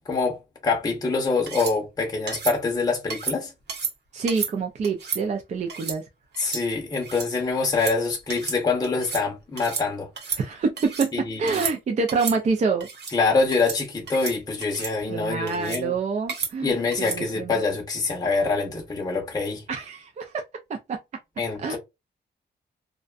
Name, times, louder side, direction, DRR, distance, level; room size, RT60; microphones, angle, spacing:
voice 1, 0.1-3.5 6.4-10.4 11.1-11.6 13.1-15.9 16.6-19.6 21.4-21.8, left 4 dB, 20° left, 0.6 m, -25 dB
sound 1, 1.5-1.8 2.3-2.6 3.1-3.4 3.7-3.9 4.3-4.5 4.8-5.2 5.7-6.0 6.3-6.6 6.9-7.3 7.6-8.0 8.3-8.6 8.8-9.2 9.6-9.9 10.2-11.1 11.5-11.8 12.1-12.4 12.8-13.1 13.5-13.8 14.1-14.3 14.6-14.9 15.5-15.8 16.3-16.5 16.9-17.2, right 6 dB, 70° right, 0.9 m, -32 dB
voice 2, 4.1-6.0 10.4-11.1 11.4-12.9 15.1-17.6 19.7-20.4 20.7-21.0 21.6-21.8, right 4 dB, 40° right, 0.4 m, -26 dB
2.5 x 2.2 x 2.3 m
wide cardioid pair, 175°, 18 cm